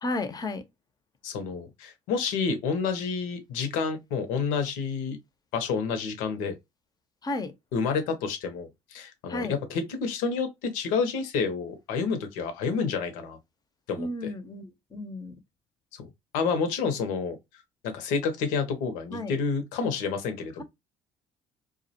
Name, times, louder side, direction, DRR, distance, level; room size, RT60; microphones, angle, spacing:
voice 1, 0.0-0.6 7.2-7.5 9.3-9.6 14.0-15.4 19.1-19.3 20.6-20.7, left 2 dB, 30° left, 0.6 m, -33 dB
voice 2, 1.2-5.2 5.5-6.6 7.7-13.4 13.9-14.1 15.9-16.1 16.3-17.4 17.8-20.6, left 5 dB, 80° left, 0.7 m, -29 dB
2.3 x 2.0 x 2.7 m
supercardioid pair, 70°, 14 cm